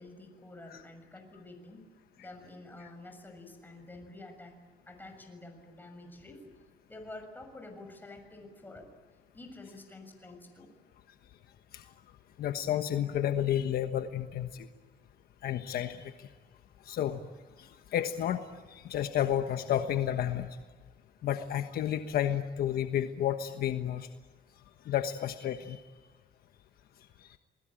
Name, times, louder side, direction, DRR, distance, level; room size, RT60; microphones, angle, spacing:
voice 1, 0.0-1.9 2.2-4.6 4.9-6.6 6.9-8.9 9.3-10.7, left 2 dB, 10° left, 5 dB, 6.7 m, -49 dB
voice 2, 12.4-14.7 15.4-16.3 16.8-17.2 17.6-20.6 21.2-24.1 24.8-25.8 27.3-27.4, left 10 dB, 65° left, 8 dB, 1.3 m, -31 dB
28.5 x 20.5 x 9.1 m, 1.4 s
cardioid pair, 110°, 17 cm